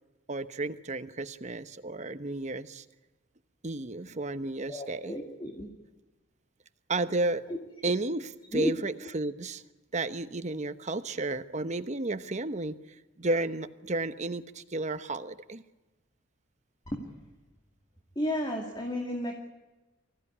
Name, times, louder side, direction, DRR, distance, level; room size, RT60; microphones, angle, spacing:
voice 1, 0.3-2.8 3.6-5.2 6.9-7.4 7.8-9.6 9.9-12.8 13.2-15.6, right 2 dB, 40° right, 11 dB, 1.0 m, -32 dB
voice 2, 4.7-5.7 7.5-7.6 8.5-8.7 16.9-17.1 18.2-19.3, left 1 dB, 25° left, 2 dB, 2.4 m, -32 dB
25.0 x 16.5 x 9.8 m, 1.1 s
head